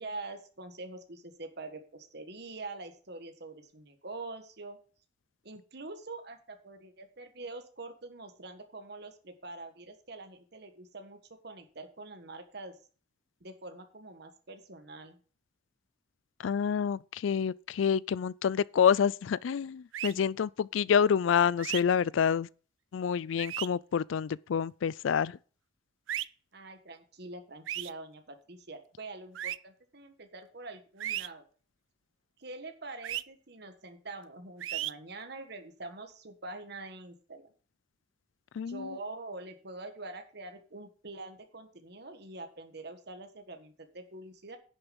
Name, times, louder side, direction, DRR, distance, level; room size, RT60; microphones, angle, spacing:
voice 1, 0.0-4.8 5.4-11.2 11.4-12.8 13.4-15.2 26.5-31.4 32.4-37.5 38.7-44.6, right 2 dB, 55° right, 1.5 m, -45 dB
voice 2, 16.4-22.5 22.9-25.4 38.6-38.9, left 7 dB, 85° left, 0.4 m, -28 dB
sound 1, 19.9-20.1 21.6-21.8 23.4-23.7 26.1-26.3 27.7-27.9 29.4-29.6 31.0-31.3 33.0-33.2 34.6-34.9, right 12 dB, 85° right, 0.4 m, -34 dB
10.5 x 6.7 x 5.3 m
head